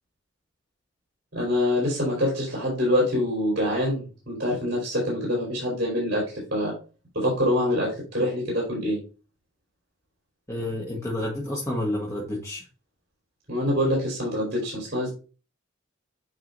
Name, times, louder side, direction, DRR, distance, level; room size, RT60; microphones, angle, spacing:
voice 1, 1.3-6.7 7.1-9.0 13.5-15.1, left 1 dB, 55° right, -5 dB, 3.9 m, -25 dB
voice 2, 10.5-12.6, left 1 dB, 15° left, -4 dB, 1.4 m, -29 dB
9.1 x 4.7 x 2.6 m, 0.33 s
head